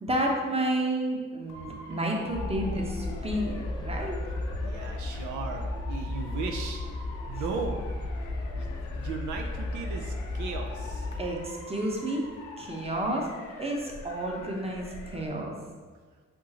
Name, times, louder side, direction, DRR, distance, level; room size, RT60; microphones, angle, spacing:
voice 1, 0.0-4.2 11.2-12.3 12.6-13.3 13.6-15.5, right 1 dB, 20° right, 0 dB, 1.0 m, -30 dB
Motor vehicle (road) / Siren, 1.5-15.3, left 3 dB, 90° left, 0.7 m, -45 dB
sound 1, 2.3-11.3, left 2 dB, 15° left, 0.5 m, -34 dB
voice 2, 4.3-6.8 7.3-7.9 8.6-11.1, right 5 dB, 80° right, 2 dB, 0.5 m, -37 dB
5.0 x 3.6 x 2.9 m, 1.5 s
supercardioid pair, 60°, 30 cm